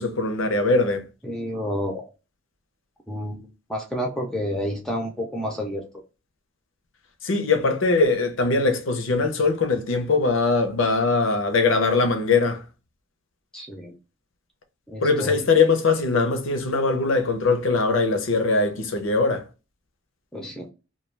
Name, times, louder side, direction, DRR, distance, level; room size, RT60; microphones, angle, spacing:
voice 1, 0.0-1.1 7.2-12.6 15.0-19.4, left 3 dB, 85° left, 0.6 m, -21 dB
voice 2, 1.2-2.0 3.1-5.8 13.5-13.9 14.9-15.4 20.3-20.7, equal, 5° left, 0.4 m, -30 dB
2.2 x 2.2 x 3.1 m
head